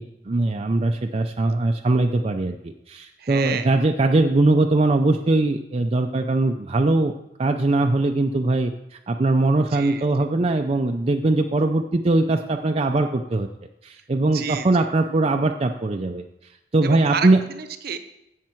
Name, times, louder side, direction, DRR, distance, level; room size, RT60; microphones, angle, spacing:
voice 1, 0.0-7.1 7.4-13.5 13.8-16.2 16.7-17.4, right 2 dB, 35° right, 4 dB, 0.5 m, -21 dB
voice 2, 3.2-3.7 9.7-10.0 14.3-14.7 16.8-18.0, right 6 dB, 55° right, 9 dB, 0.8 m, -30 dB
15.0 x 6.6 x 4.5 m, 0.88 s
head